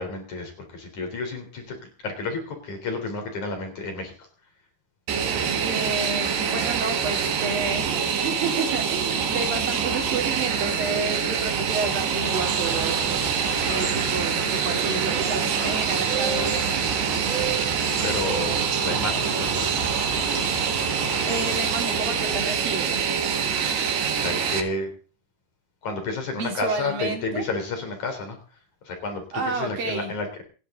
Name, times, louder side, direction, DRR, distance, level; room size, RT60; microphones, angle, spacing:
voice 1, 0.0-4.3 17.4-17.5 18.0-19.8 24.2-24.9 25.8-28.4 28.8-30.4, left 3 dB, 50° left, 4 dB, 5.0 m, -31 dB
Fixed-wing aircraft airplane, 5.1-24.6, right 7 dB, 90° right, 4.2 m, -25 dB
voice 2, 5.6-13.2 13.6-16.7 21.2-23.1 26.3-27.5 29.3-30.1, right 3 dB, 60° right, 2 dB, 5.3 m, -30 dB
sound 1, 12.3-21.8, right 5 dB, 40° right, 3.8 m, -32 dB
27.5 x 11.0 x 3.9 m, 0.37 s
omnidirectional pair, 4.6 m